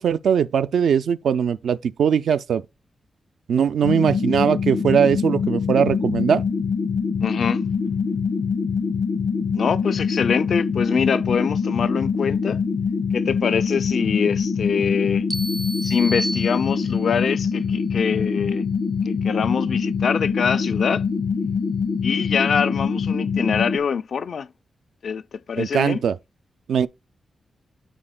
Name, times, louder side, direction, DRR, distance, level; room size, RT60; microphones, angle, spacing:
voice 1, 0.0-2.6 3.5-6.4 25.6-26.2 26.7-26.9, right 7 dB, 85° right, 0.4 m, -20 dB
sound 1, 3.8-23.8, left 5 dB, 85° left, 1.1 m, -24 dB
voice 2, 7.2-7.6 9.5-12.6 13.1-15.3 15.8-18.6 19.1-21.0 22.0-24.5 25.0-26.0, left 6 dB, 65° left, 0.3 m, -24 dB
sound 2, 15.3-17.2, right 1 dB, 5° right, 0.4 m, -31 dB
12.5 x 4.2 x 2.2 m
wide cardioid pair, 105°, 0 cm